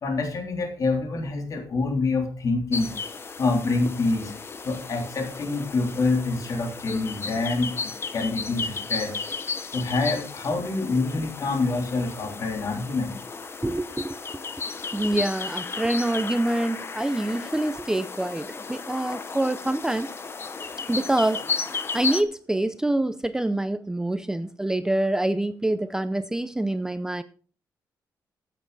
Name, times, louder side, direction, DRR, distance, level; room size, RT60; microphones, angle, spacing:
voice 1, 0.0-3.0 3.4-4.3 4.6-9.2 9.7-13.2, left 3 dB, 50° left, 3 dB, 3.3 m, -26 dB
sound 1, 2.7-22.2, left 4 dB, 35° left, 1.0 m, -34 dB
voice 2, 13.6-14.2 14.9-20.1 20.9-27.2, right 1 dB, 10° right, 12 dB, 0.5 m, -26 dB
15.0 x 7.3 x 4.1 m, 0.42 s
cardioid pair, 140°, 7 cm